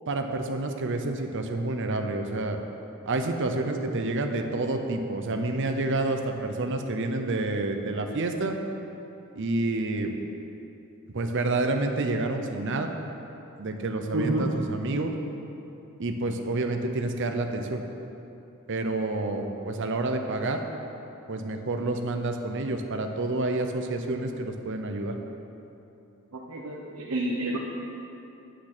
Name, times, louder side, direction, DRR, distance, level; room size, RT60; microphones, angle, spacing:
voice 1, 0.1-2.6 3.1-8.6 9.4-10.1 11.1-12.9 13.6-15.1 16.0-17.8 18.7-20.6 21.3-25.2, right 2 dB, 60° right, 5 dB, 0.8 m, -28 dB
voice 2, 14.1-14.5 26.3-27.6, right 1 dB, 85° right, -3 dB, 0.9 m, -29 dB
8.8 x 8.1 x 6.1 m, 2.9 s
head